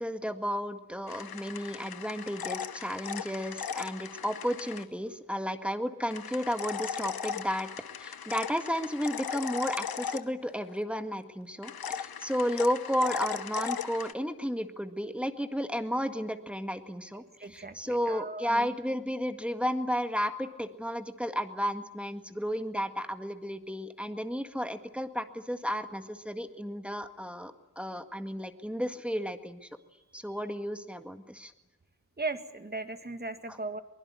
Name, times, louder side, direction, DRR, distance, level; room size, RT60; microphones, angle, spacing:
voice 1, 0.0-7.7 8.0-29.7 30.1-31.5 33.5-33.6, equal, 5° right, 8 dB, 1.9 m, -33 dB
sound 1, 1.1-4.8 6.1-10.7 11.6-14.1, left 7 dB, 80° left, 1.1 m, -38 dB
voice 2, 17.1-18.7 32.2-33.8, right 3 dB, 25° right, 9 dB, 2.1 m, -38 dB
23.5 x 21.5 x 9.8 m, 0.98 s
wide cardioid pair, 100°, 35 cm